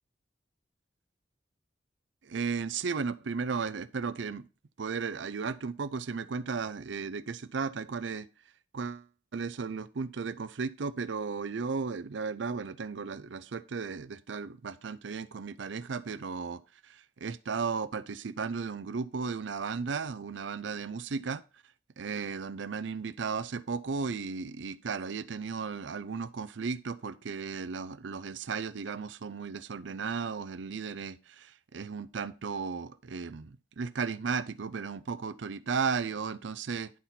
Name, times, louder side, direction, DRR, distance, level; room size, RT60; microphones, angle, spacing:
voice 1, 2.2-4.5 4.8-8.3 8.7-9.1 9.3-21.4 22.0-36.9, right 5 dB, 85° right, 0.5 m, -35 dB
11.0 x 4.3 x 5.7 m
head